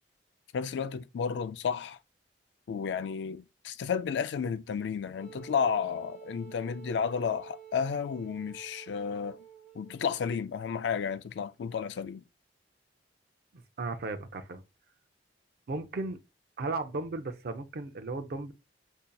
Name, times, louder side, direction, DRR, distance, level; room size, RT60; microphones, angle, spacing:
voice 1, 0.5-2.0 2.7-9.4 9.7-12.2, left 6 dB, 70° left, 0.3 m, -32 dB
Wind instrument woodwind instrument, 5.2-10.3, right 10 dB, 10° left, 1.6 m, -50 dB
voice 2, 13.5-14.6 15.7-16.2 16.6-18.5, right 3 dB, 55° right, 0.5 m, -35 dB
5.1 x 2.8 x 2.2 m
head